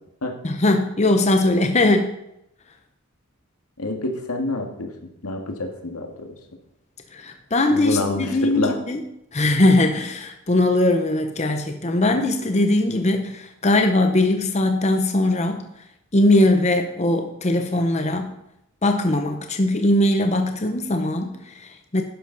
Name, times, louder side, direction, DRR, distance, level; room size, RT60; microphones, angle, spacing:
voice 1, 0.4-2.1 7.1-9.0 9.3-15.6 16.1-18.3 18.8-22.0, left 1 dB, 30° left, 6 dB, 0.8 m, -20 dB
voice 2, 3.8-4.9 5.2-6.3 7.7-8.8, left 2 dB, 85° left, 4 dB, 1.9 m, -27 dB
12.0 x 10.5 x 4.0 m, 0.81 s
head